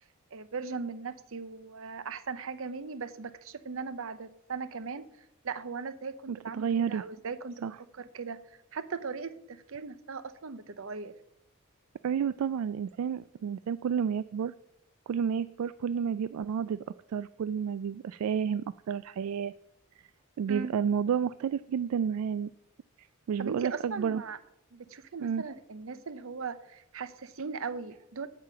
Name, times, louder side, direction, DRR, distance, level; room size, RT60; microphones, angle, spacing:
voice 1, 0.3-5.1 5.4-7.6 8.0-8.4 8.7-11.1 20.5-20.7 23.4-24.4 24.7-28.3, right 5 dB, 65° right, 14 dB, 0.7 m, -38 dB
voice 2, 6.3-7.0 7.6-7.8 12.0-14.5 15.1-19.5 20.4-22.5 23.0-24.2 25.2-25.4, right 7 dB, 80° right, 16 dB, 0.3 m, -31 dB
8.6 x 7.5 x 7.3 m, 0.81 s
head